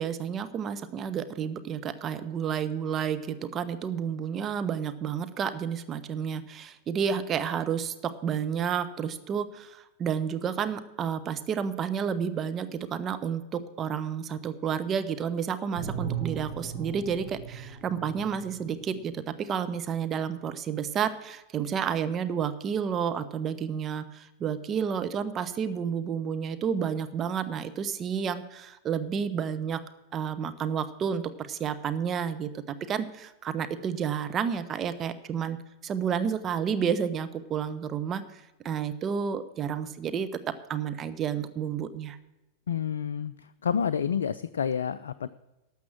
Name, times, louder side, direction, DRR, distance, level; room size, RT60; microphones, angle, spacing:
voice 1, 0.0-29.8 30.1-40.3 40.7-42.2, right 7 dB, 25° right, 12 dB, 0.6 m, -31 dB
sound 1, 15.7-19.1, right 7 dB, 45° right, 4.8 m, -37 dB
voice 2, 42.7-43.3 43.6-45.3, left 7 dB, 65° left, 15 dB, 0.3 m, -29 dB
12.0 x 7.1 x 7.5 m, 0.99 s
figure-of-eight pair, 90°, 0 cm